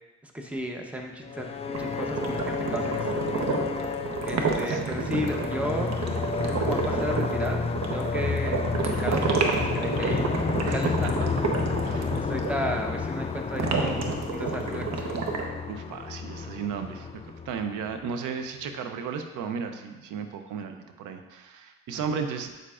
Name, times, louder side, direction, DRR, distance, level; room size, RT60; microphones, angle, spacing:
voice 1, 0.2-2.4 2.7-3.7 4.2-5.9 6.5-7.6 7.9-8.6 8.8-10.3 10.7-11.3 12.1-15.2, equal, 5° right, 2 dB, 0.9 m, -34 dB
sound 1, 1.2-18.1, left 5 dB, 20° left, 0.3 m, -31 dB
sound 2, 1.7-12.5 13.6-15.4, right 4 dB, 60° right, 1.0 m, -29 dB
voice 2, 10.7-11.1 11.8-12.1 15.7-22.5, right 6 dB, 85° right, 6 dB, 0.7 m, -34 dB
7.9 x 6.7 x 2.5 m, 1.2 s
cardioid pair, 90°, 30 cm